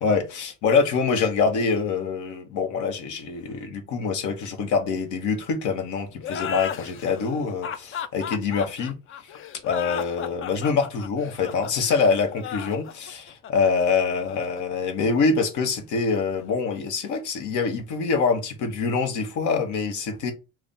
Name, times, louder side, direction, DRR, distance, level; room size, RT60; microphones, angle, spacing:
voice 1, 0.0-8.9 9.3-9.4 9.6-20.3, left 5 dB, 70° left, 1.2 m, -25 dB
sound 1, 6.2-15.5, left 8 dB, 40° left, 0.4 m, -35 dB
3.3 x 2.4 x 4.0 m
cardioid pair, 115°, 31 cm